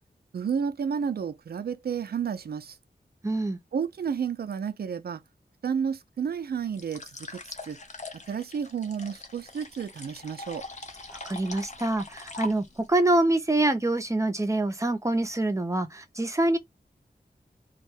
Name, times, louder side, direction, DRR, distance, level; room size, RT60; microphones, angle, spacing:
voice 1, 0.3-2.8 3.7-5.2 5.6-7.8 8.3-10.6, right 7 dB, 65° right, 0.4 m, -31 dB
voice 2, 3.2-3.6 11.1-16.6, right 2 dB, 20° right, 0.5 m, -25 dB
sound 1, 6.7-13.0, left 3 dB, 45° left, 0.6 m, -42 dB
2.3 x 2.1 x 3.2 m
wide cardioid pair, 85°, 17 cm